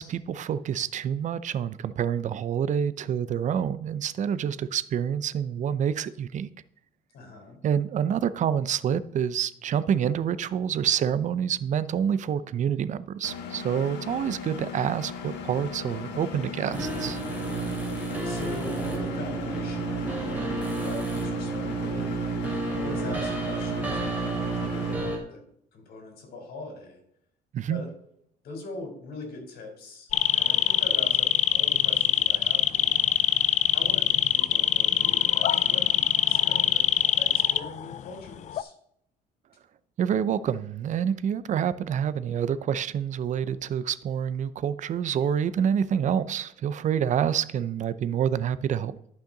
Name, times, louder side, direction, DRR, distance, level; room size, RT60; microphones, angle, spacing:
voice 1, 0.0-6.5 7.6-17.2 27.5-27.8 40.0-49.0, right 8 dB, 45° right, 0.6 m, -27 dB
voice 2, 7.1-7.6 18.2-22.1 22.5-25.4 25.7-27.0 27.7-27.9 28.4-33.1 33.7-36.9 37.2-38.7, left 2 dB, 65° left, 3.8 m, -42 dB
Engine, 13.2-24.9, left 6 dB, 85° left, 1.4 m, -38 dB
sound 1, 16.7-25.2, right 4 dB, 10° right, 2.6 m, -30 dB
sound 2, 30.1-38.0 38.3-38.6, left 10 dB, 45° left, 0.4 m, -23 dB
11.5 x 5.7 x 3.9 m
cardioid pair, 110°, 17 cm